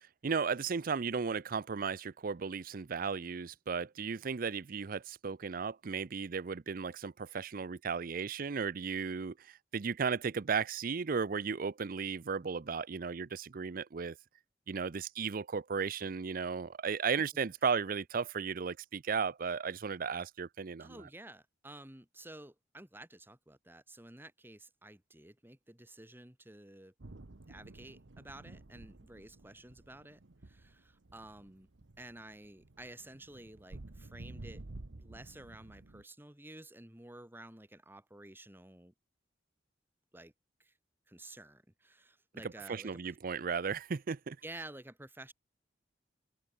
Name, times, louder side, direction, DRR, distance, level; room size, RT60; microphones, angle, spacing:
voice 1, 0.0-14.2 14.7-21.0 42.7-44.4, right 5 dB, 50° right, 0.5 m, -35 dB
voice 2, 20.8-26.9 27.5-31.7 32.0-34.6 35.0-38.9 40.1-40.3 40.6-40.7 41.1-43.2 44.4-45.3, right 1 dB, 10° right, 2.1 m, -52 dB
sound 1, 27.0-36.0, right 2 dB, 80° right, 1.1 m, -52 dB
open air
head